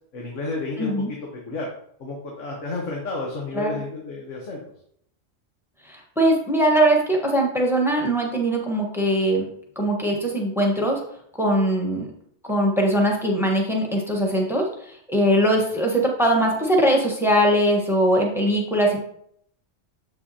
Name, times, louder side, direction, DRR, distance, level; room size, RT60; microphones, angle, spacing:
voice 1, 0.1-0.9 1.5-1.7 2.0-4.6, left 3 dB, 85° left, -1 dB, 1.4 m, -31 dB
voice 2, 0.8-1.1 3.5-3.8 5.8-9.5 9.8-11.0 11.4-12.1 12.4-19.0, right 1 dB, ahead, 0 dB, 1.1 m, -21 dB
7.4 x 5.5 x 2.8 m, 0.68 s
omnidirectional pair, 1.2 m